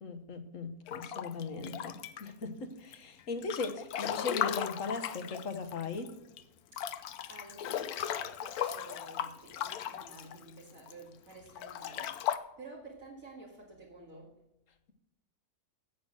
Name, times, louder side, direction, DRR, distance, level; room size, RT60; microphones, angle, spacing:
voice 1, 0.0-6.1, left 4 dB, 60° left, 9 dB, 1.5 m, -38 dB
Breathing / Bathtub (filling or washing) / Splash splatter, 0.9-2.4 2.9-6.1 6.4-6.5 6.7-10.9 11.5-12.4, left 10 dB, 75° left, 1.2 m, -37 dB
voice 2, 6.7-14.4, right 2 dB, 60° right, -3 dB, 2.6 m, -51 dB
16.0 x 6.1 x 6.3 m, 0.89 s
omnidirectional pair, 1.6 m